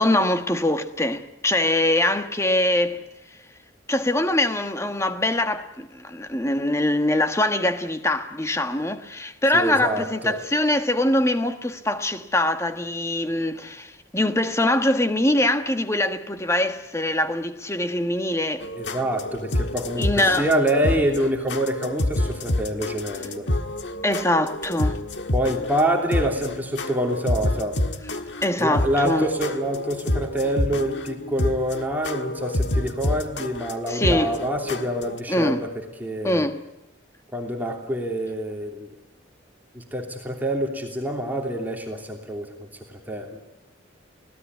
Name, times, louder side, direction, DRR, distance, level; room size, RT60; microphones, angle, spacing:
voice 1, 0.0-3.0 3.9-18.7 20.0-20.5 24.0-25.0 28.4-29.3 33.9-34.3 35.3-35.6 36.2-36.6, left 1 dB, 15° left, 1.4 m, -23 dB
voice 2, 9.5-10.4 18.7-23.5 25.3-27.8 28.6-35.7 36.0-36.5 37.3-38.9 39.7-42.7 43.1-43.4, right 1 dB, 10° right, 3.0 m, -26 dB
sound 1, 18.6-35.2, left 1 dB, 65° left, 1.6 m, -28 dB
25.5 x 17.5 x 9.6 m
head